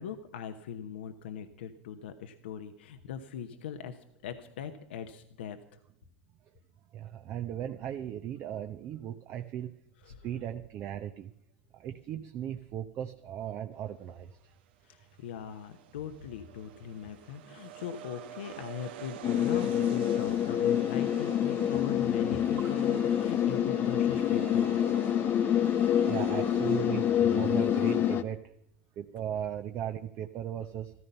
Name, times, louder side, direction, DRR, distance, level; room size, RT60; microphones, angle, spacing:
voice 1, 0.0-5.6 10.0-10.3 14.8-24.8, left 8 dB, 80° left, 7 dB, 1.0 m, -40 dB
voice 2, 6.9-9.7 10.0-11.3 11.7-14.5 21.8-21.9 26.1-28.4 29.0-30.9, right 10 dB, 45° right, 7 dB, 0.8 m, -37 dB
sound 1, 15.3-28.2, right 9 dB, 75° right, 1.1 m, -46 dB
sound 2, 19.2-28.2, left 10 dB, 40° left, 0.8 m, -27 dB
14.0 x 14.0 x 5.5 m, 0.75 s
hypercardioid pair, 100°, 6 cm